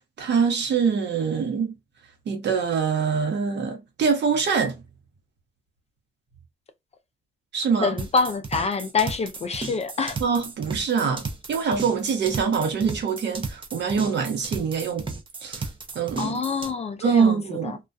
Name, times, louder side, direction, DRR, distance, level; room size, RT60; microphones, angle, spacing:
voice 1, 0.2-1.7 2.3-4.8 7.5-8.0 10.2-15.1 15.4-15.7 15.9-16.4 17.0-17.8, right 6 dB, 60° right, 0.9 m, -24 dB
voice 2, 7.8-10.2 16.2-17.4 17.6-17.8, left 4 dB, 35° left, 0.4 m, -26 dB
sound 1, 8.0-16.7, right 4 dB, 25° right, 0.5 m, -34 dB
2.3 x 2.2 x 2.5 m
cardioid pair, 90°, 20 cm